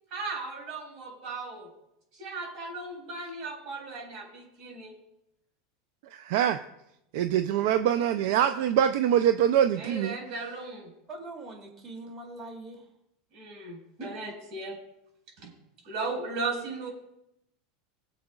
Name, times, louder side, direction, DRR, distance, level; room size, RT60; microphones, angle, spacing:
voice 1, 0.1-1.7 2.1-4.9 9.8-10.9 13.3-14.8 15.4-15.5 15.8-16.9, right 3 dB, 55° right, 0 dB, 4.8 m, -36 dB
voice 2, 6.1-6.6 7.1-10.1, right 10 dB, 70° right, 9 dB, 0.5 m, -24 dB
voice 3, 11.1-12.9, right 2 dB, 30° right, 1 dB, 2.7 m, -42 dB
23.0 x 7.8 x 2.4 m, 0.84 s
supercardioid pair, 115°, 0 cm